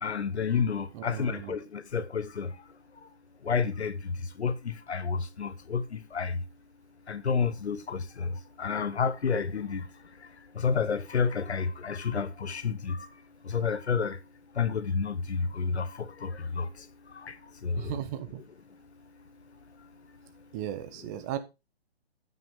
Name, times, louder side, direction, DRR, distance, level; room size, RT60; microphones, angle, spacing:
voice 1, 0.0-2.6 3.4-6.4 7.1-9.9 10.2-14.2 14.5-18.0 20.9-21.2, left 5 dB, 85° left, 1.1 m, -30 dB
voice 2, 0.9-1.6 17.8-18.4 20.5-21.4, right 11 dB, 15° right, 0.6 m, -36 dB
12.5 x 5.9 x 3.6 m
hypercardioid pair, 145°, 32 cm